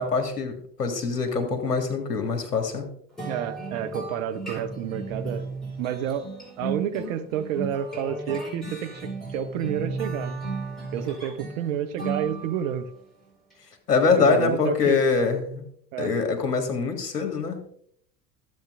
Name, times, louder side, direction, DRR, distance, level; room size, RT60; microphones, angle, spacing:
voice 1, 0.0-2.8 13.9-15.6 16.0-17.6, left 4 dB, 75° left, 5 dB, 1.8 m, -24 dB
sound 1, 3.2-12.8, right 3 dB, ahead, 4.5 m, -35 dB
voice 2, 3.3-5.4 5.8-6.3 6.6-10.4 10.9-12.9 14.2-15.0 15.9-16.1, right 9 dB, 55° right, 11 dB, 0.8 m, -30 dB
13.5 x 8.0 x 2.5 m, 0.64 s
figure-of-eight pair, 80°, 48 cm